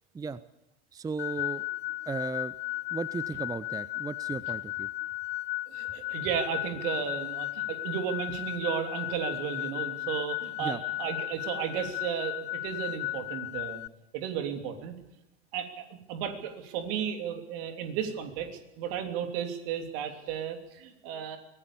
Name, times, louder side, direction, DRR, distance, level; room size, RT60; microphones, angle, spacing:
voice 1, 0.9-2.5 2.9-4.9 10.6-10.8 21.1-21.2, right 4 dB, 10° right, 17 dB, 0.6 m, -36 dB
sound 1, 1.2-13.9, left 18 dB, 35° left, 0.6 m, -35 dB
voice 2, 5.7-13.8 14.1-14.9 15.5-18.5 18.8-21.4, right 8 dB, 55° right, 6 dB, 3.2 m, -34 dB
24.0 x 17.5 x 7.0 m, 0.94 s
figure-of-eight pair, 80°, 34 cm